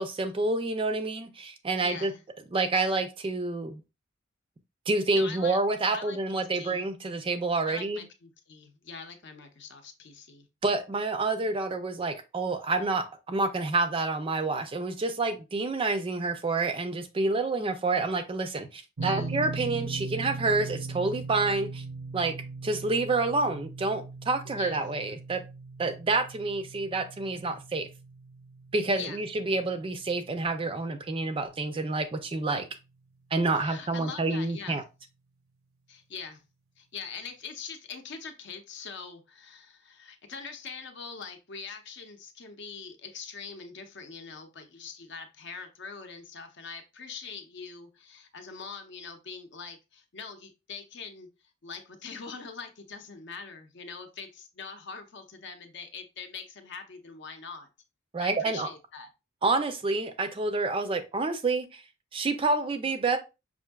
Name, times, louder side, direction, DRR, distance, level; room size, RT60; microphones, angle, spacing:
voice 1, 0.0-2.1 2.5-3.8 4.9-8.0 10.6-21.8 22.1-22.3 22.6-25.4 25.8-27.9 28.7-32.7 33.3-34.8 58.1-58.7 59.4-61.8 62.1-63.2, right 3 dB, 25° right, 0.4 m, -28 dB
voice 2, 1.8-2.2 5.1-5.6 5.9-6.9 7.6-10.5 19.0-19.4 24.5-24.9 28.9-29.2 33.6-34.8 35.9-36.4 36.8-51.3 51.6-57.7 58.2-59.1, left 5 dB, 60° left, 0.7 m, -43 dB
sound 1, 19.0-31.9, right 3 dB, 85° right, 0.7 m, -40 dB
5.6 x 2.6 x 2.2 m
head